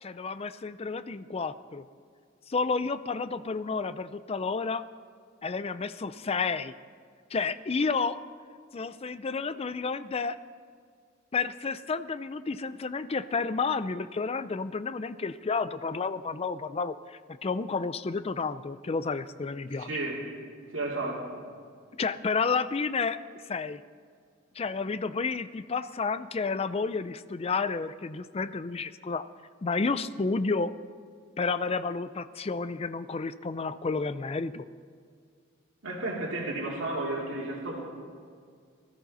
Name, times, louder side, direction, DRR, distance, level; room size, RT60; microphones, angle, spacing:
voice 1, 0.0-1.8 2.5-4.8 5.4-6.7 7.3-8.2 8.7-10.4 11.3-19.9 22.0-23.2 23.5-23.8 24.6-29.3 29.6-30.7 31.4-34.7, left 4 dB, 30° left, 13 dB, 0.4 m, -31 dB
voice 2, 19.8-20.2 20.7-21.5 35.8-37.8, right 2 dB, 70° right, -2 dB, 2.5 m, -33 dB
20.0 x 14.0 x 4.1 m, 2.1 s
head